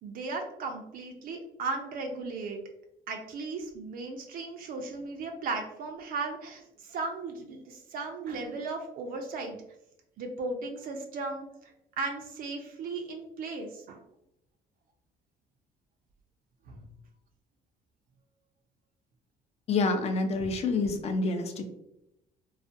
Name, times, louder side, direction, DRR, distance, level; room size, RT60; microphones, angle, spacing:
voice 1, 0.0-2.6 3.1-9.6 10.2-11.4 12.0-14.0 16.7-16.8 20.4-20.5, right 3 dB, 60° right, 3 dB, 0.4 m, -36 dB
voice 2, 19.7-21.6, left 3 dB, 40° left, 6 dB, 0.4 m, -27 dB
2.3 x 2.1 x 2.5 m, 0.83 s
cardioid pair, 110°, 17 cm